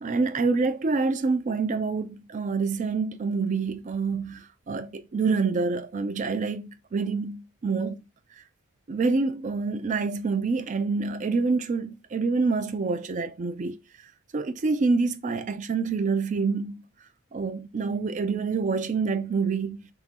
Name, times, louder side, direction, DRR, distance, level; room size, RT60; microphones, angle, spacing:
voice 1, 0.0-8.0 8.9-13.8 14.3-16.8 17.3-19.8, right 4 dB, 35° right, 0.4 m, -27 dB
3.7 x 2.9 x 4.1 m
head